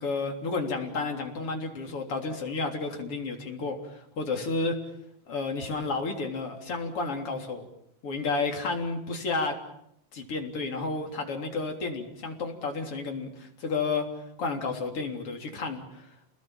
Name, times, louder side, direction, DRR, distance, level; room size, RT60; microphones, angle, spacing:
voice 1, 0.0-4.8 5.3-7.7 8.0-9.6 10.1-14.1 14.4-16.1, left 3 dB, 45° left, 3 dB, 4.3 m, -31 dB
29.5 x 21.0 x 7.4 m, 0.77 s
omnidirectional pair, 3.6 m